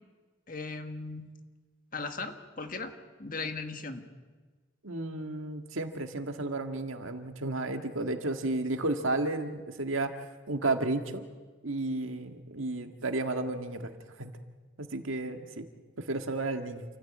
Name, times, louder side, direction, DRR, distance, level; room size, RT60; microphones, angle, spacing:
voice 1, 0.5-1.3 1.9-2.9 3.2-4.1, left 3 dB, 45° left, 7 dB, 1.7 m, -37 dB
voice 2, 4.8-10.2 10.5-11.2 11.6-13.9 14.2-14.3 14.8-15.7 16.0-16.8, right 2 dB, 85° right, 6 dB, 1.9 m, -32 dB
29.0 x 14.5 x 8.7 m, 1.4 s
head